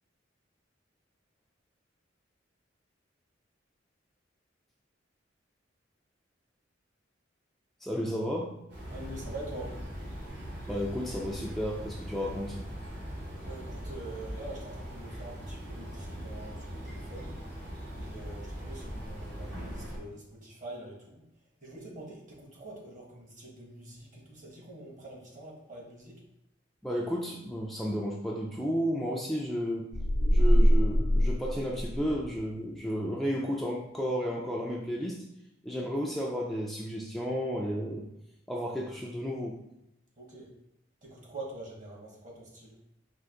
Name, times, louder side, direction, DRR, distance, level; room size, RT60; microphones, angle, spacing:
voice 1, 7.8-8.6 10.7-12.6 26.8-29.9 30.3-35.2 35.6-38.0 38.5-39.6, equal, ahead, -3 dB, 0.4 m, -32 dB
sound 1, 8.7-20.0, equal, 65° right, 1.5 m, -40 dB
voice 2, 8.9-9.7 13.4-17.3 18.0-21.2 21.6-26.2 40.2-40.5 41.0-42.7, right 2 dB, 45° right, -3 dB, 1.4 m, -45 dB
sound 2, 29.9-32.3, equal, 70° left, 0.7 m, -23 dB
4.6 x 2.5 x 3.7 m, 0.85 s
head